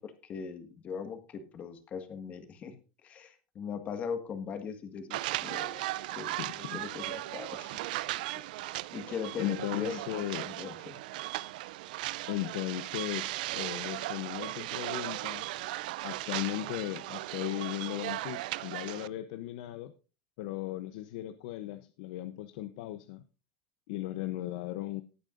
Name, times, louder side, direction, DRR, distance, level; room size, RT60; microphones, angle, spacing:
voice 1, 0.0-2.7 3.0-5.8 6.1-7.8 8.9-10.9, left 6 dB, 30° left, 7 dB, 1.7 m, -40 dB
sound 1, 5.1-19.1, right 17 dB, 85° right, 0.4 m, -37 dB
voice 2, 6.4-6.8 8.4-8.5 9.3-10.5 12.3-15.5 16.0-19.9 20.4-23.2 23.9-25.0, left 15 dB, 75° left, 10 dB, 0.7 m, -37 dB
18.0 x 8.9 x 2.6 m, 0.33 s
supercardioid pair, 155°, 4 cm